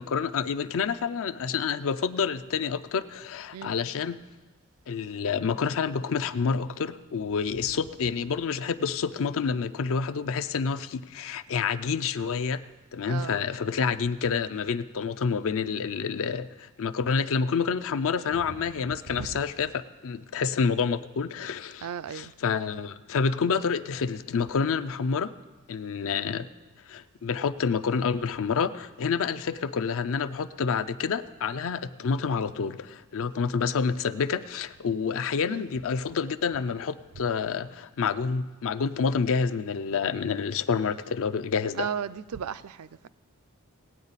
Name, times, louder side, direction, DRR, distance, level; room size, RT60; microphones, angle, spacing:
voice 1, 0.0-4.2 4.9-12.6 12.9-25.3 25.7-26.5 26.9-41.9, left 5 dB, 65° left, 0.5 m, -28 dB
voice 2, 13.1-13.4 19.2-19.3 21.8-22.3 35.5-35.7 41.8-42.9, right 7 dB, 75° right, 0.4 m, -34 dB
18.5 x 8.6 x 4.1 m
head